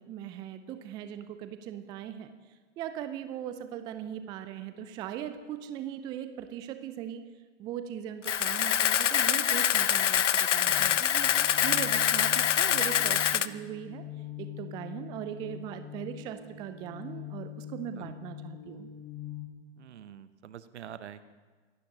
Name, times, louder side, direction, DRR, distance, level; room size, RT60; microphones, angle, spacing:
voice 1, 0.0-7.2 7.6-14.0 14.4-18.9, right 10 dB, 15° right, 10 dB, 0.3 m, -39 dB
Camera, 8.2-13.5, left 10 dB, 80° left, 0.5 m, -25 dB
sound 1, 10.7-19.5, left 10 dB, 60° left, 2.0 m, -43 dB
voice 2, 19.8-21.3, right 9 dB, 70° right, 13 dB, 0.9 m, -46 dB
24.5 x 11.5 x 2.9 m, 1.4 s
figure-of-eight pair, 105°, 35 cm